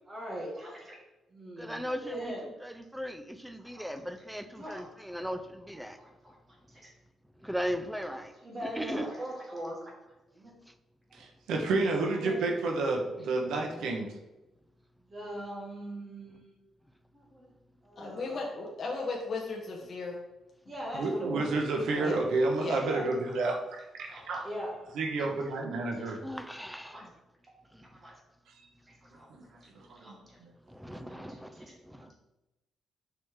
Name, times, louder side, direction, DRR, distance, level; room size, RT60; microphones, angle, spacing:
voice 1, 0.1-1.0 1.3-2.4 3.6-3.9 4.5-5.2 6.0-6.9 8.1-8.2 8.4-10.5 12.1-12.4 15.0-16.5 17.1-17.5 17.8-18.4 20.6-21.5 21.9-22.2 22.8-23.1 24.1-24.9 25.9-26.1 26.9-27.0 27.9-28.1 29.1-29.3 29.6-29.7 29.9-30.4 31.3-31.7, equal, 25° right, -2 dB, 1.6 m, -41 dB
voice 2, 1.6-2.3 2.6-6.0 7.4-8.3 8.6-9.1 10.7-10.8 22.8-22.9 26.2-27.1 27.7-28.0 29.0-29.1 30.7-32.1, equal, ahead, 9 dB, 0.4 m, -38 dB
voice 3, 11.1-14.1 20.9-24.4 24.9-26.2 29.3-29.4 29.8-30.5, right 3 dB, 85° right, 2 dB, 1.1 m, -30 dB
voice 4, 18.0-20.2 22.0-22.2 22.6-22.8, left 3 dB, 35° left, -2 dB, 1.0 m, -36 dB
6.8 x 5.0 x 3.6 m, 1.0 s
cardioid pair, 175°, 0 cm